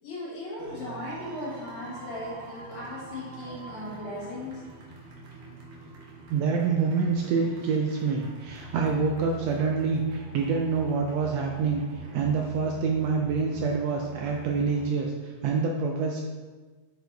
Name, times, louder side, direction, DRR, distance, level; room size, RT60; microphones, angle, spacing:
voice 1, 0.0-4.6, left 1 dB, 65° left, -8 dB, 2.8 m, -37 dB
sound 1, 0.6-14.9, right 2 dB, 60° right, 1.1 m, -44 dB
voice 2, 6.3-16.2, right 5 dB, 85° right, 1 dB, 1.5 m, -26 dB
6.3 x 4.7 x 3.9 m, 1.4 s
omnidirectional pair, 3.5 m